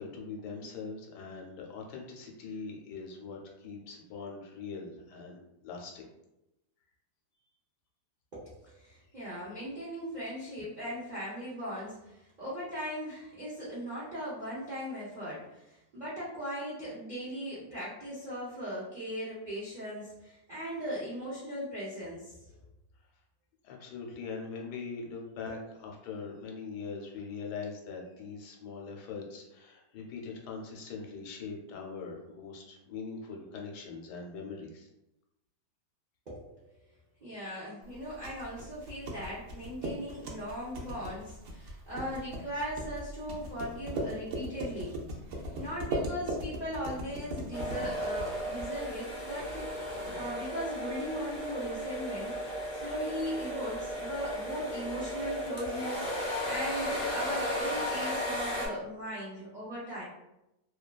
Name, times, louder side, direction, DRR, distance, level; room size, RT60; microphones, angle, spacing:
voice 1, 0.0-5.4 5.6-6.1 23.6-34.9, left 4 dB, 80° left, 0 dB, 1.2 m, -42 dB
voice 2, 8.3-22.5 36.3-36.6 37.2-45.0 45.5-52.4 52.7-56.2 56.4-60.0, equal, 85° right, -9 dB, 0.4 m, -38 dB
sound 1, 37.9-49.0, right 1 dB, 70° right, 0.8 m, -39 dB
sound 2, 47.5-58.7, equal, 60° left, 0.3 m, -35 dB
2.8 x 2.2 x 2.3 m, 0.89 s
omnidirectional pair, 1.8 m